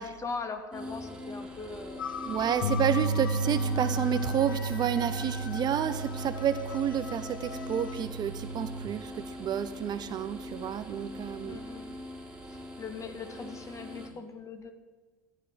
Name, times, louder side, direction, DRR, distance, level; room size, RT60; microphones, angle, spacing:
voice 1, 0.0-2.0 11.4-11.9 12.5-14.7, left 4 dB, 30° left, 7 dB, 2.2 m, -40 dB
sound 1, 0.7-14.1, left 1 dB, 10° right, 4.0 m, -43 dB
sound 2, 2.0-8.0, left 6 dB, 90° left, 0.6 m, -42 dB
voice 2, 2.3-9.1 9.4-11.6, right 9 dB, 40° right, 12 dB, 1.0 m, -30 dB
sound 3, 2.6-8.9, right 2 dB, 65° left, 1.5 m, -33 dB
14.5 x 9.6 x 7.8 m, 1.4 s
hypercardioid pair, 75°, 11 cm